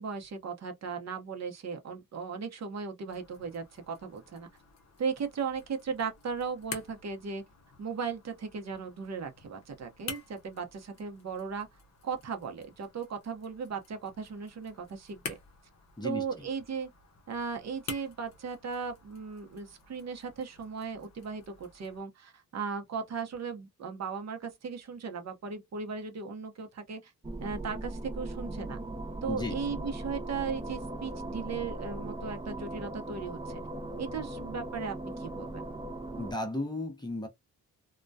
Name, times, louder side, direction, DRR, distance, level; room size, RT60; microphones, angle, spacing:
voice 1, 0.0-4.5 5.0-7.4 7.8-11.7 12.0-15.4 16.0-16.9 17.3-27.1 27.4-28.8 29.2-33.6 34.0-35.7, right 5 dB, 50° right, 0.7 m, -37 dB
sound 1, 3.1-22.0, left 5 dB, 45° left, 0.7 m, -49 dB
voice 2, 16.0-16.5 29.2-29.6 36.2-37.3, left 2 dB, 10° left, 0.6 m, -35 dB
sound 2, 27.2-36.3, right 2 dB, 15° right, 0.3 m, -39 dB
2.2 x 2.1 x 2.5 m
wide cardioid pair, 135°, 35 cm